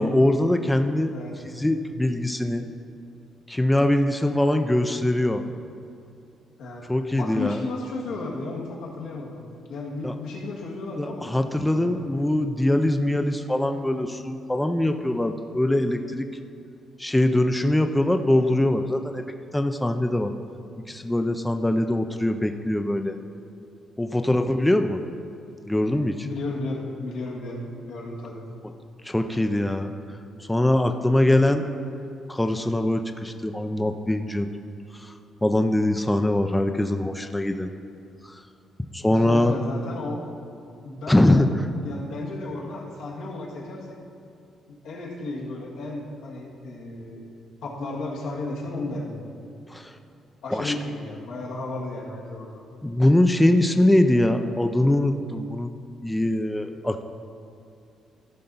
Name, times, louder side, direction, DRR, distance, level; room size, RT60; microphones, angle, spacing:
voice 1, 0.0-1.1 1.6-2.7 3.5-5.4 6.9-7.6 10.0-10.1 11.0-16.3 17.0-19.2 19.5-20.3 20.9-23.2 24.0-25.0 25.7-26.1 29.0-29.9 30.5-31.6 32.3-34.5 34.9-35.1 35.4-37.7 38.2-38.4 38.9-39.6 41.1-41.5 49.7-49.9 50.5-50.7 52.8-55.7 56.0-57.0, left 1 dB, 10° left, 6 dB, 0.4 m, -22 dB
voice 2, 6.6-6.9 7.2-9.4 9.7-12.1 24.2-24.4 26.2-28.4 39.1-40.3 40.8-44.0 44.8-47.3 47.6-49.3 50.4-52.6, left 2 dB, 85° left, -3 dB, 1.8 m, -34 dB
14.0 x 5.5 x 4.0 m, 2.5 s
cardioid pair, 90°, 0 cm